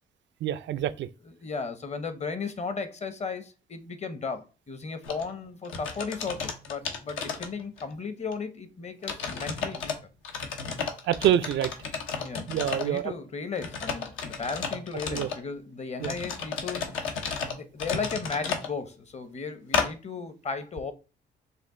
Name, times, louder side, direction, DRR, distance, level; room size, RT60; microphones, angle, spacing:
voice 1, 0.4-1.1 11.1-11.7 12.5-13.1 15.1-15.3 16.0-16.1, right 11 dB, 65° right, 0.4 m, -26 dB
voice 2, 1.2-9.9 12.2-20.9, left 4 dB, 35° left, 0.7 m, -35 dB
sound 1, 5.0-5.2 5.6-7.9 8.3-8.4 9.0-9.9 10.2-13.0 13.5-15.4 16.0-18.7 19.7-19.9, left 5 dB, 85° left, 0.9 m, -32 dB
5.2 x 2.4 x 3.6 m
cardioid pair, 90°, 20 cm